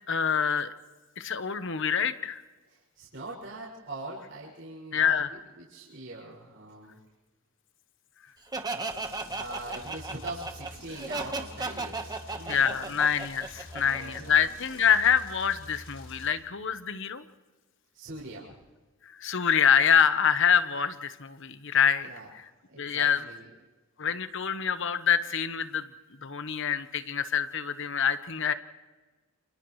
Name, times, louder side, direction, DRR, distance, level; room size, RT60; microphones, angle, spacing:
voice 1, 0.1-0.7 1.2-2.4 4.9-5.3 12.5-17.2 19.0-22.1 22.8-23.3 24.0-25.9 26.2-28.5, left 7 dB, 65° left, 11 dB, 1.1 m, -26 dB
voice 2, 2.9-7.0 9.1-12.9 13.7-14.3 17.9-18.5 22.0-22.3 22.7-23.5, right 2 dB, 65° right, -4 dB, 6.8 m, -42 dB
Laughter, 8.5-14.2, right 3 dB, 20° right, 1.3 m, -35 dB
sound 1, 8.9-16.3, left 2 dB, 45° left, 3.7 m, -47 dB
29.0 x 29.0 x 3.2 m, 1.2 s
head